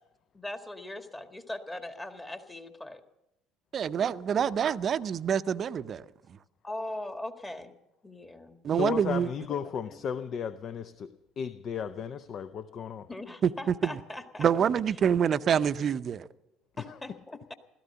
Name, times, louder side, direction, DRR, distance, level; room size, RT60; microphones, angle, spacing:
voice 1, 0.3-3.0 6.6-7.7 8.0-8.6 9.5-9.6 13.1-14.4 16.8-17.5, left 1 dB, 15° left, 1.8 m, -40 dB
voice 2, 3.7-6.0 8.6-9.3 13.4-13.5 14.4-16.3, right 8 dB, 45° right, 0.6 m, -26 dB
voice 3, 8.8-13.1 16.8-17.0, left 8 dB, 50° left, 0.6 m, -35 dB
16.0 x 13.5 x 6.8 m
hypercardioid pair, 65°, 0 cm